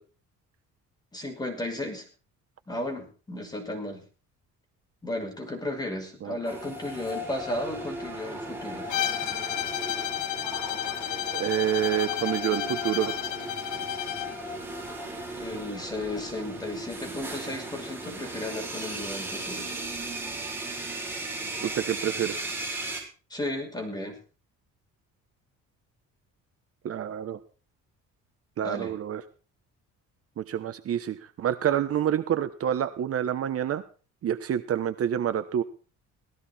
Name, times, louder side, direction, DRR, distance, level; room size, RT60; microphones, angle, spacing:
voice 1, 1.1-2.0 2.7-4.0 5.0-8.9 15.4-19.7 23.3-24.2 28.6-28.9, left 1 dB, 15° left, 3 dB, 5.8 m, -34 dB
sound 1, 6.4-23.0, right 2 dB, 5° right, 6.6 m, -37 dB
Bowed string instrument, 8.9-14.4, left 11 dB, 70° left, 1.5 m, -32 dB
voice 2, 11.3-13.2 21.6-22.5 26.8-27.4 28.6-29.2 30.4-33.8 34.2-35.6, right 10 dB, 50° right, 10 dB, 1.2 m, -28 dB
18.5 x 15.0 x 4.4 m, 0.37 s
cardioid pair, 135°, 30 cm